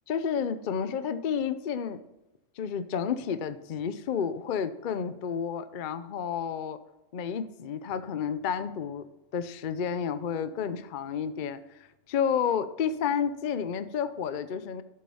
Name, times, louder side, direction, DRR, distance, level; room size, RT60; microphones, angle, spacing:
voice 1, 0.1-2.0 2.6-6.8 7.1-9.1 9.3-14.8, left 7 dB, 50° left, 12 dB, 0.6 m, -31 dB
11.5 x 7.4 x 4.2 m, 0.99 s
omnidirectional pair, 1.3 m